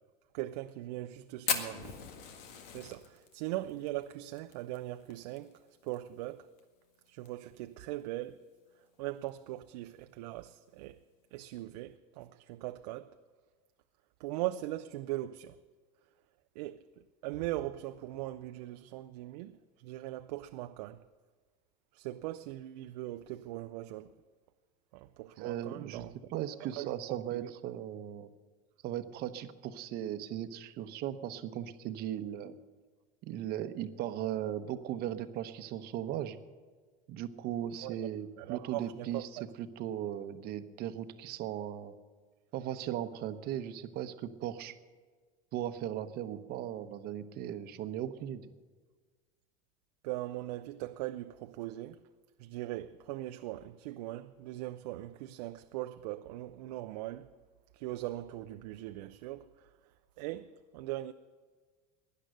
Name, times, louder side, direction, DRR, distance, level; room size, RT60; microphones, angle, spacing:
voice 1, 0.3-2.0 2.7-5.5 5.8-6.5 7.1-8.4 9.0-11.0 11.3-13.1 14.2-15.6 16.6-16.8 17.2-21.0 21.9-24.2 24.9-26.3 26.6-27.5 37.8-38.0 38.4-39.4 50.0-52.0 52.4-57.3 57.7-59.5 60.2-61.1, right 16 dB, 80° right, 0.5 m, -40 dB
Fire, 1.5-6.0 6.2-6.3 6.6-6.7 7.1-7.5 8.0-8.1 9.1-9.3, left 7 dB, 75° left, 1.8 m, -37 dB
voice 2, 25.4-26.0 26.3-28.3 28.8-32.5 33.2-36.4 37.1-39.3 39.6-41.9 42.5-44.8 45.5-48.5, right 11 dB, 50° right, 1.0 m, -37 dB
16.5 x 11.0 x 6.5 m
supercardioid pair, 120°, 20 cm